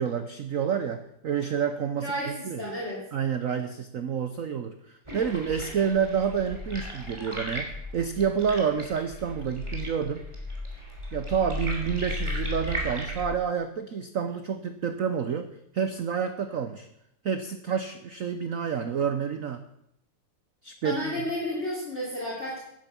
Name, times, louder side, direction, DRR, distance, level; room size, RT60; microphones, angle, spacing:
voice 1, 0.0-2.6 3.1-10.2 11.1-16.9 17.2-19.7 20.6-21.2, right 7 dB, 80° right, 9 dB, 0.7 m, -29 dB
voice 2, 2.0-3.0 20.8-22.6, equal, 30° left, -5 dB, 3.1 m, -32 dB
sound 1, 5.1-13.2, left 1 dB, 15° right, 3.0 m, -35 dB
10.5 x 10.5 x 6.9 m, 0.79 s
omnidirectional pair, 2.4 m